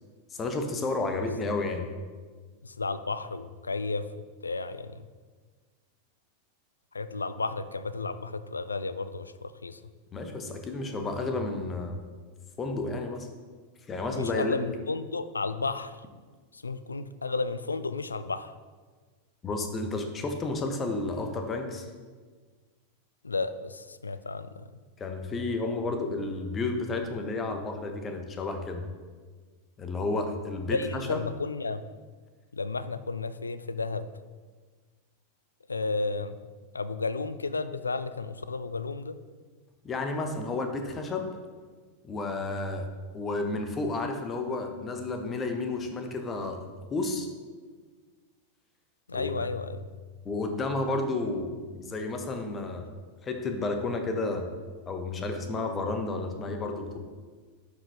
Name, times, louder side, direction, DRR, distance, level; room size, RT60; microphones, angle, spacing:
voice 1, 0.4-1.9 10.1-12.0 12.6-13.3 13.9-14.6 19.4-21.9 25.0-28.9 29.8-31.2 39.8-41.4 42.0-42.9 43.1-46.6 46.9-47.3 49.1-49.5 50.2-52.9 53.2-54.5 54.9-57.0, left 3 dB, 20° left, 5 dB, 1.0 m, -31 dB
voice 2, 2.6-5.1 6.9-9.8 14.1-16.0 16.5-18.6 23.2-24.7 30.7-31.8 32.5-34.1 35.7-36.5 36.7-39.2 49.1-49.9, left 3 dB, 75° left, 13 dB, 0.4 m, -33 dB
11.0 x 5.0 x 3.4 m, 1.5 s
figure-of-eight pair, 90°, 0 cm